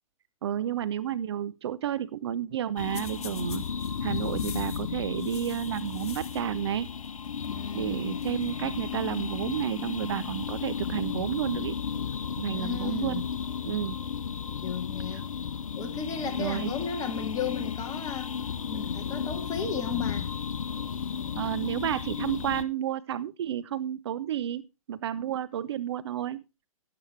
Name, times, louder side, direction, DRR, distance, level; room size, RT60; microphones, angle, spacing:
voice 1, 0.4-3.6 4.0-6.9 7.7-11.7 12.4-13.2 13.6-14.0 16.4-16.7 21.4-24.6 24.9-26.4, right 10 dB, 50° right, 0.6 m, -31 dB
sound 1, 2.8-22.6, left 7 dB, 70° left, 0.8 m, -34 dB
sound 2, 2.9-6.6 6.9-7.6 7.9-8.0 8.2-8.5 9.4-9.7 10.4-10.8 11.3-12.4 15.4-15.5 15.8-16.6 17.1-17.2 18.1-18.2 19.3-20.2 21.4-22.0, left 7 dB, 50° left, 1.9 m, -49 dB
voice 2, 7.4-8.2 12.5-13.3 14.6-15.3 15.8-18.3 18.7-20.3, left 6 dB, 20° left, 2.0 m, -35 dB
12.5 x 10.5 x 3.3 m
figure-of-eight pair, 125°, 18 cm